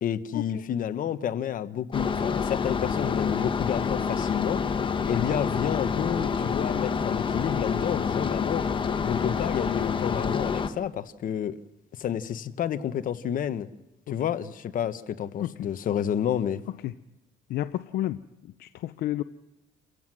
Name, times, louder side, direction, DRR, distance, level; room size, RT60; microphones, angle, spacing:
voice 1, 0.0-8.7 9.0-11.6 12.0-13.7 14.1-16.6, left 9 dB, 55° left, 12 dB, 1.1 m, -30 dB
sound 1, 1.9-10.7, left 6 dB, 30° left, 1.3 m, -28 dB
voice 2, 17.5-18.2 18.6-19.2, left 14 dB, 70° left, 12 dB, 0.6 m, -30 dB
29.0 x 15.5 x 6.2 m, 1.0 s
cardioid pair, 110°, 17 cm